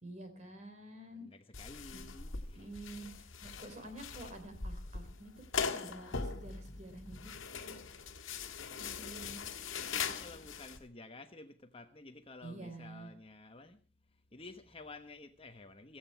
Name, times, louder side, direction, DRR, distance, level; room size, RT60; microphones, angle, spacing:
voice 1, 0.0-1.3 1.9-2.0 2.5-7.8 8.8-9.4 12.4-13.1, right 1 dB, 35° right, 3.7 m, -49 dB
voice 2, 1.1-2.9 9.0-13.8 14.1-16.0, left 2 dB, 30° left, 1.1 m, -52 dB
sound 1, 1.5-10.8, left 5 dB, 85° left, 1.8 m, -41 dB
16.5 x 15.5 x 4.5 m
head